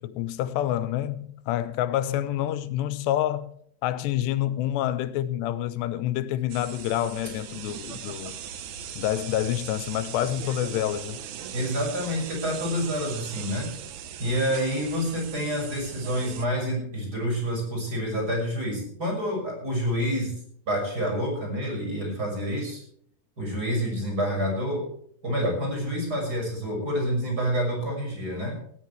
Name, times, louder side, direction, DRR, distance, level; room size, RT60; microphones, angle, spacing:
voice 1, 0.0-3.5 3.8-8.4 9.0-11.2, left 12 dB, 90° left, 3.0 m, -28 dB
sound 1, 6.5-16.5, right 9 dB, 70° right, 2.0 m, -39 dB
voice 2, 11.5-13.7 14.2-20.4 20.7-22.8 23.4-24.9 25.2-28.6, equal, 20° right, 6.4 m, -28 dB
17.5 x 15.5 x 3.3 m
omnidirectional pair, 4.8 m